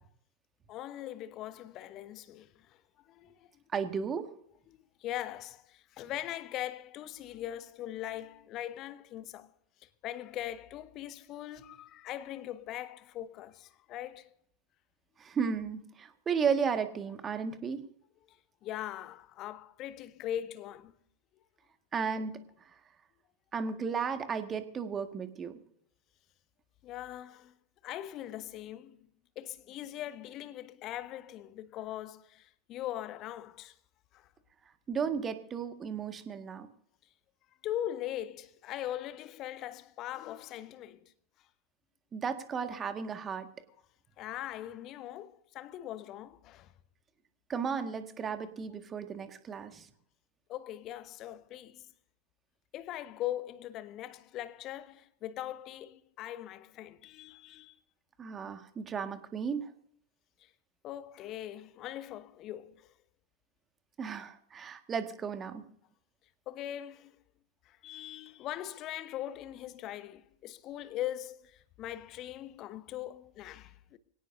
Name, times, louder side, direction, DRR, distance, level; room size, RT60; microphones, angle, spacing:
voice 1, 0.7-2.8 3.1-3.5 4.7-9.5 9.8-14.3 18.6-20.9 26.8-27.5 27.8-29.0 29.4-33.7 34.1-34.3 37.6-41.1 44.2-46.7 50.5-51.9 52.7-57.8 60.4-60.5 60.8-62.9 66.5-67.1 67.7-74.0, left 12 dB, 35° left, 1.1 m, -41 dB
voice 2, 3.7-4.3 15.2-17.8 21.9-22.4 23.5-25.6 34.9-36.7 42.1-43.5 47.5-49.9 58.2-59.7 64.0-65.6, right 6 dB, 20° right, 1.8 m, -34 dB
25.0 x 17.5 x 2.7 m
figure-of-eight pair, 90°, 0 cm